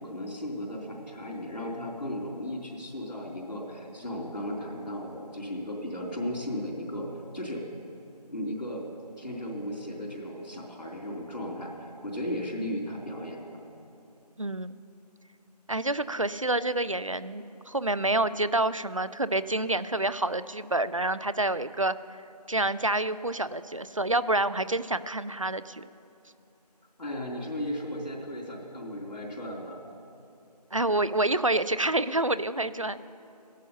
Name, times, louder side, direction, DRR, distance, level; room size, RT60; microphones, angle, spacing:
voice 1, 0.0-7.1 7.3-7.6 8.3-8.9 9.2-13.6 27.0-29.8, left 1 dB, 85° left, -1 dB, 4.0 m, -35 dB
voice 2, 14.4-14.8 15.7-21.9 22.5-25.9 30.7-33.0, right 2 dB, 50° right, 15 dB, 0.4 m, -28 dB
14.5 x 11.0 x 5.6 m, 2.8 s
figure-of-eight pair, 180°, 21 cm